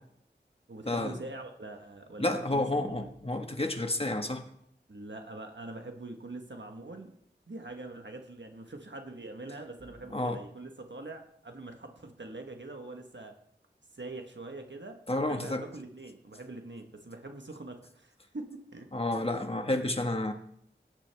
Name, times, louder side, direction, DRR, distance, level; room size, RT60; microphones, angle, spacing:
voice 1, 0.7-3.1 4.9-7.1 7.5-13.3 13.9-15.0 15.3-18.9, right 2 dB, 75° right, 4 dB, 1.3 m, -44 dB
voice 2, 2.2-4.4 10.1-10.4 15.1-15.6 18.9-20.3, left 2 dB, 30° left, 5 dB, 1.5 m, -30 dB
17.0 x 9.7 x 3.5 m, 0.70 s
wide cardioid pair, 40°, 19 cm